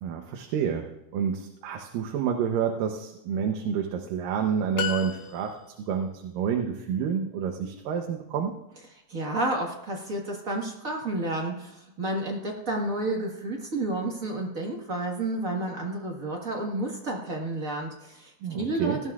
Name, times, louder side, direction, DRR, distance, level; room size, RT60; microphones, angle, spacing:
voice 1, 0.0-5.6 5.9-8.5 18.4-19.0, right 7 dB, 85° right, 3 dB, 2.6 m, -29 dB
sound 1, 4.8-5.9, left 7 dB, 85° left, 2.7 m, -33 dB
voice 2, 9.1-19.0, right 2 dB, 45° right, 0 dB, 1.1 m, -31 dB
19.0 x 12.5 x 2.4 m, 0.88 s
omnidirectional pair, 3.8 m